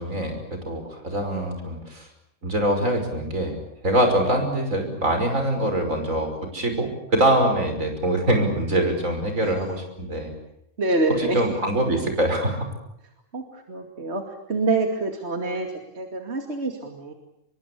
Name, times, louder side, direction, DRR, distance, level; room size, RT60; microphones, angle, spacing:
voice 1, 0.0-2.1 2.4-3.6 3.8-10.3 11.1-12.7, right 1 dB, 85° right, 5 dB, 6.0 m, -24 dB
voice 2, 5.6-6.2 9.4-9.5 10.8-11.6 13.3-14.2 14.5-17.1, right 2 dB, 55° right, 4 dB, 2.7 m, -27 dB
25.5 x 23.0 x 8.4 m, 0.78 s
omnidirectional pair, 1.3 m